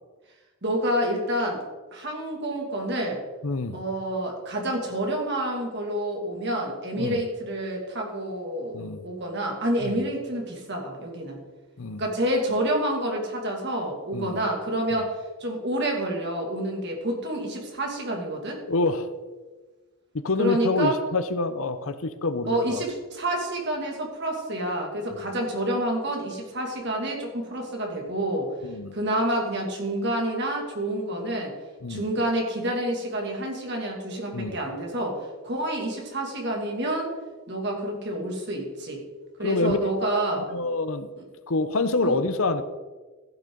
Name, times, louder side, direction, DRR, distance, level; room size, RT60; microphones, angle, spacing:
voice 1, 0.6-1.6 1.9-3.2 3.7-8.8 9.0-11.4 12.0-18.6 20.4-21.0 22.5-28.5 28.9-31.5 31.9-37.1 37.5-39.0 39.4-40.4 42.0-42.1, right 1 dB, 50° right, 0 dB, 2.5 m, -28 dB
voice 2, 3.4-3.8 7.0-7.2 8.7-9.0 9.8-9.9 11.8-12.0 14.1-14.4 18.7-19.1 20.1-22.8 28.6-29.0 31.8-32.0 34.3-34.6 39.4-39.8 40.1-40.2 40.5-41.1 41.5-42.6, left 3 dB, 70° left, 11 dB, 0.8 m, -26 dB
15.0 x 9.3 x 3.9 m, 1.3 s
head